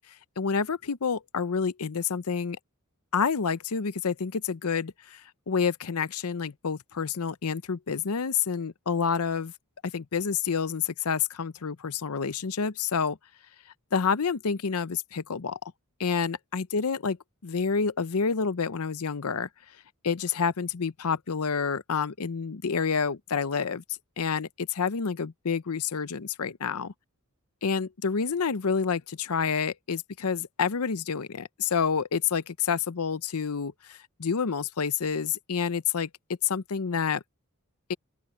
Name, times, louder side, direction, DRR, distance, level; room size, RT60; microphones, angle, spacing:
voice 1, 0.4-2.6 3.1-9.5 9.8-13.2 13.9-15.6 16.0-17.2 17.4-19.5 20.0-23.8 24.2-26.9 27.6-36.1 36.4-37.2 37.9-38.0, left 6 dB, 80° left, 0.7 m, -28 dB
open air
head